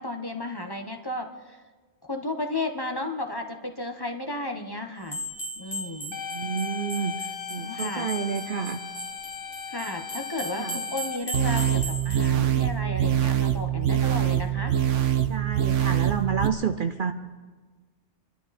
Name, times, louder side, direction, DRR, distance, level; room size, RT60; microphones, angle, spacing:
voice 1, 0.0-1.6 2.0-5.2 5.6-6.2 7.6-8.1 9.7-14.8, left 2 dB, 20° left, 4 dB, 1.2 m, -33 dB
sound 1, 5.1-12.3, equal, 40° left, 2.3 m, -37 dB
sound 2, 6.1-11.2, left 7 dB, 80° left, 1.2 m, -37 dB
voice 2, 6.3-8.8 10.6-10.8 15.3-17.1, right 7 dB, 55° right, 8 dB, 0.7 m, -29 dB
sound 3, 11.3-16.5, right 10 dB, 85° right, 1.2 m, -24 dB
27.0 x 12.0 x 4.3 m, 1.4 s
omnidirectional pair, 1.2 m